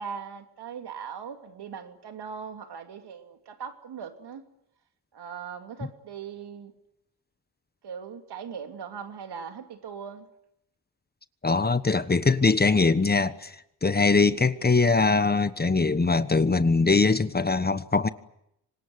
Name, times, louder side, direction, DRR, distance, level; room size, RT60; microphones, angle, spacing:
voice 1, 0.0-4.4 5.1-6.7 7.8-10.3, right 7 dB, 65° right, 2.9 m, -39 dB
voice 2, 11.4-18.1, left 4 dB, 20° left, 1.2 m, -22 dB
25.5 x 19.5 x 9.7 m
cardioid pair, 65°, 42 cm